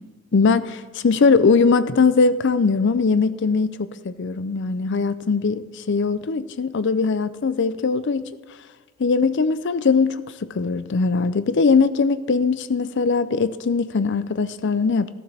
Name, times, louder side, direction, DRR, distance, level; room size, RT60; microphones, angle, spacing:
voice 1, 0.3-8.3 9.0-15.1, left 4 dB, 60° left, 0.5 m, -20 dB
15.0 x 11.5 x 3.4 m
head